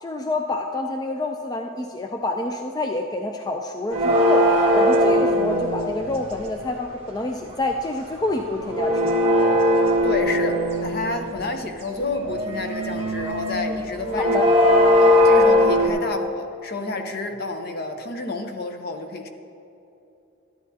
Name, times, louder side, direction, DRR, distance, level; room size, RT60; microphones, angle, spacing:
voice 1, 0.0-9.1 14.3-14.5, left 2 dB, 20° left, 3 dB, 0.4 m, -27 dB
sound 1, 3.9-6.3 8.2-11.4 12.0-15.9, left 1 dB, 30° right, 1.5 m, -19 dB
voice 2, 10.0-14.5 15.0-19.3, left 2 dB, 50° left, 6 dB, 0.7 m, -30 dB
13.0 x 10.5 x 2.8 m, 2.8 s
head